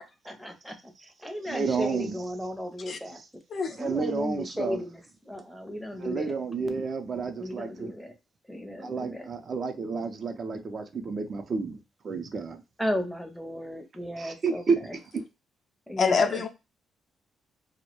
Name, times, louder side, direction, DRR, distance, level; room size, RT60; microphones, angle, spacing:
voice 1, 0.2-3.2 3.8-6.3 7.3-8.2 8.5-9.3 12.8-14.6 15.9-16.4, left 1 dB, ahead, 0.6 m, -35 dB
voice 2, 1.5-2.1 3.8-4.8 6.0-7.9 8.8-11.8 12.0-12.6 14.2-14.8 15.1-15.2, right 4 dB, 45° right, 0.4 m, -30 dB
voice 3, 3.5-3.8 16.0-16.5, left 5 dB, 50° left, 0.4 m, -25 dB
2.2 x 2.1 x 2.9 m
cardioid pair, 90°, 0 cm